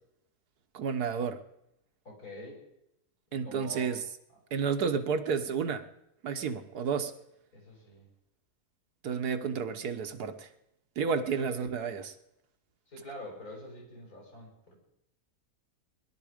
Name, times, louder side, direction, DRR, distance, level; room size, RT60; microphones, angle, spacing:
voice 1, 0.7-1.4 3.3-4.0 4.5-5.9 6.2-7.1 9.0-10.5 11.0-12.1, right 6 dB, 80° right, 1.6 m, -31 dB
voice 2, 2.0-2.6 3.3-3.9 7.5-8.1 11.3-11.7 12.9-14.8, left 1 dB, 70° left, 6.7 m, -45 dB
21.0 x 12.0 x 5.1 m
omnidirectional pair, 1.7 m